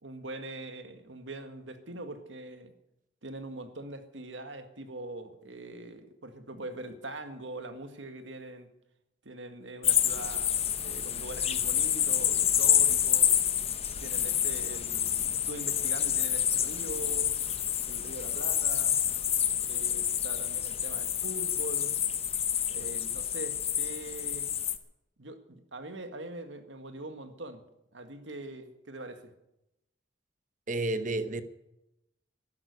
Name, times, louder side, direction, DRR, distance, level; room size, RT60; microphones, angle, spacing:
voice 1, 0.0-2.7 3.2-8.7 9.2-10.5 10.8-13.3 14.0-17.3 17.9-19.0 19.6-22.0 22.7-24.5 25.2-27.6 27.9-29.3, right 2 dB, 80° right, 1.9 m, -42 dB
sound 1, 9.8-24.8, left 10 dB, 30° left, 0.9 m, -28 dB
voice 2, 30.7-31.4, right 2 dB, 40° right, 1.0 m, -30 dB
12.0 x 11.5 x 9.5 m
head